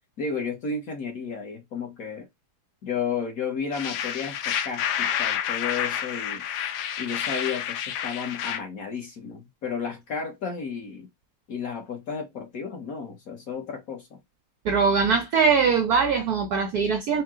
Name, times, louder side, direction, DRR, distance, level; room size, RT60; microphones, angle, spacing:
voice 1, 0.2-2.3 2.8-6.4 7.0-11.1 11.5-14.2, left 5 dB, 50° left, 1.2 m, -33 dB
sound 1, 3.7-8.6, left 9 dB, 85° left, 0.9 m, -29 dB
voice 2, 14.6-17.2, right 5 dB, 80° right, 0.8 m, -22 dB
4.6 x 2.2 x 3.6 m
omnidirectional pair, 2.3 m